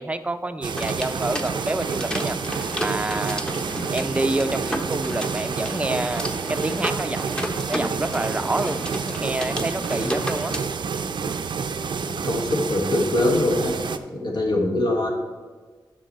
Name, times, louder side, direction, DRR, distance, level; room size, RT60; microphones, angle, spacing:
voice 1, 0.0-2.4 2.8-3.4 3.9-6.3 6.6-8.8 9.1-10.5, right 2 dB, 15° right, 10 dB, 0.5 m, -28 dB
sound 1, 0.6-14.0, right 5 dB, 75° right, 0.5 m, -29 dB
sound 2, 0.8-10.6, equal, 10° left, 0.8 m, -32 dB
voice 2, 12.0-13.8 14.1-15.1, left 2 dB, 65° left, 2 dB, 1.5 m, -23 dB
9.9 x 5.9 x 4.1 m, 1.4 s
wide cardioid pair, 100°, 8 cm